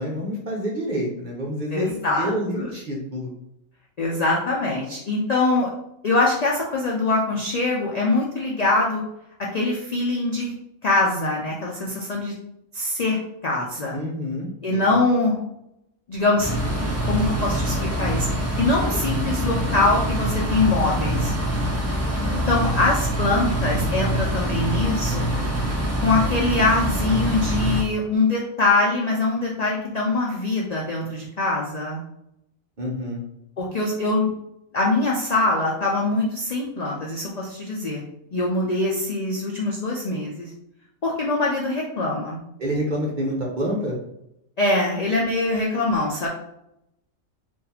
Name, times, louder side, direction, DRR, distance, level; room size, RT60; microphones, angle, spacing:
voice 1, 0.0-3.3 13.9-14.9 32.8-33.2 42.6-44.0, equal, 45° right, -2 dB, 0.7 m, -28 dB
voice 2, 1.7-2.7 4.0-5.7 6.0-9.0 9.4-10.5 10.8-12.3 12.7-14.0 14.6-15.4 16.1-16.5 17.0-18.3 18.6-21.3 22.2-25.3 26.0-32.0 33.6-34.3 34.7-38.0 38.3-40.5 41.0-42.4 44.6-46.3, left 2 dB, 60° left, -3 dB, 0.4 m, -23 dB
sound 1, 16.4-27.8, equal, 25° right, 0.3 m, -25 dB
2.8 x 2.6 x 3.9 m, 0.81 s
omnidirectional pair, 1.4 m